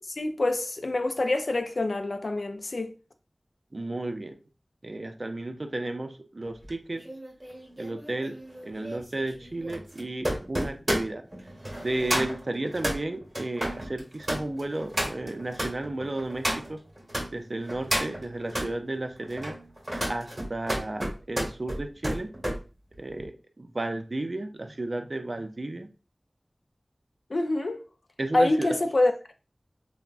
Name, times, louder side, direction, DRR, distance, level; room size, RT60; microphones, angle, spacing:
voice 1, 0.2-2.9 27.3-27.8 28.3-29.1, left 2 dB, 80° left, 0.3 m, -26 dB
voice 2, 3.7-4.4 4.8-7.0 7.8-8.3 8.6-11.3 11.8-16.8 17.3-19.6 20.1-22.3 23.0-25.9 28.2-28.8, right 2 dB, 60° right, 0.4 m, -33 dB
sound 1, 6.6-17.3 17.7-18.7 19.2-22.6 22.9-23.3, equal, 30° right, 0.9 m, -32 dB
3.3 x 2.0 x 2.4 m
wide cardioid pair, 45°, 0 cm